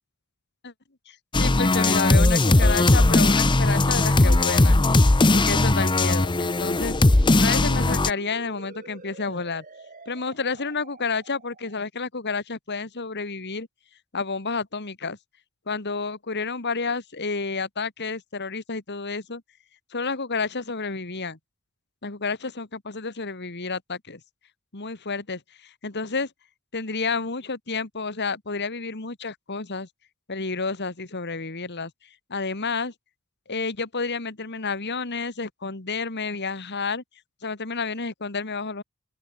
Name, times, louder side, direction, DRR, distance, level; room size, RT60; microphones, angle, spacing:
voice 1, 1.1-4.8 5.3-7.0 7.3-9.6 10.1-13.7 14.1-15.2 15.7-19.4 19.9-21.4 22.0-24.2 24.7-26.3 26.7-29.9 30.3-31.9 32.3-32.9 33.5-37.0 37.4-38.8, left 4 dB, 50° left, 2.0 m, -30 dB
sound 1, 1.3-8.1, left 2 dB, 20° left, 0.7 m, -19 dB
sound 2, 7.0-11.8, right 2 dB, 40° right, 5.4 m, -46 dB
open air
head